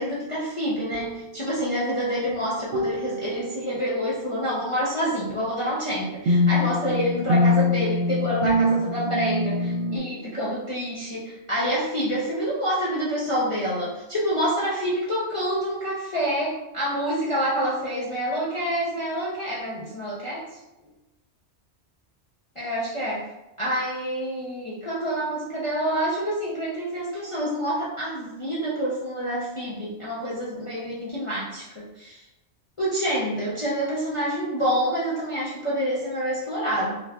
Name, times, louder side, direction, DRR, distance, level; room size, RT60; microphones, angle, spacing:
voice 1, 0.0-20.5 22.6-23.3 23.6-32.2 32.8-37.0, equal, 35° left, -8 dB, 0.5 m, -27 dB
sound 1, 0.9-1.1 2.7-3.8 6.3-10.0, left 2 dB, 85° right, 0.9 m, -24 dB
4.8 x 2.4 x 2.3 m, 0.95 s
omnidirectional pair, 1.2 m